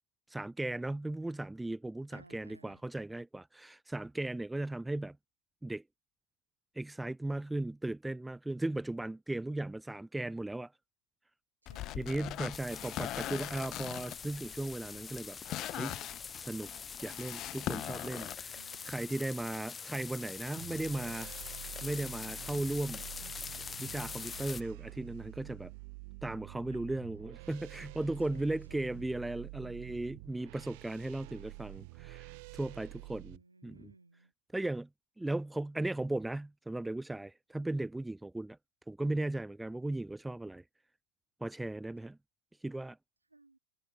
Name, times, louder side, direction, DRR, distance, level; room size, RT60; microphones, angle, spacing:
voice 1, 0.3-5.2 5.6-5.8 6.8-10.7 12.0-15.4 15.7-16.0 16.4-16.7 17.0-21.3 21.8-23.0 23.8-25.7 26.2-33.9 34.5-34.9 35.2-38.6 38.9-40.6 41.4-42.2 42.6-43.0, right 2 dB, 5° right, 0.9 m, -37 dB
voice 2, 2.1-2.8 11.6-12.4 18.5-19.1 26.7-27.2 28.0-29.2 33.1-34.3 43.3-43.6, right 3 dB, 80° right, 6.5 m, -60 dB
sound 1, 11.7-18.4, left 15 dB, 35° left, 0.3 m, -41 dB
sound 2, 12.5-24.6, left 6 dB, 20° left, 2.2 m, -44 dB
sound 3, 20.6-33.4, right 28 dB, 45° right, 2.9 m, -48 dB
figure-of-eight pair, 90°, 0 cm